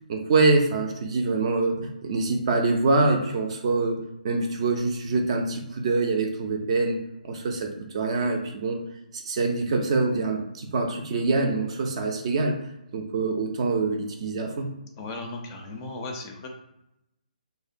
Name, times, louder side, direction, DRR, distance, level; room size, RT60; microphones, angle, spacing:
voice 1, 0.1-4.0 4.2-7.0 7.2-8.8 9.1-12.6 12.9-14.7, right 3 dB, 40° right, 3 dB, 0.4 m, -25 dB
voice 2, 15.0-16.5, left 2 dB, 25° left, 2 dB, 0.4 m, -36 dB
2.7 x 2.0 x 2.5 m, 0.87 s
figure-of-eight pair, 140°, 5 cm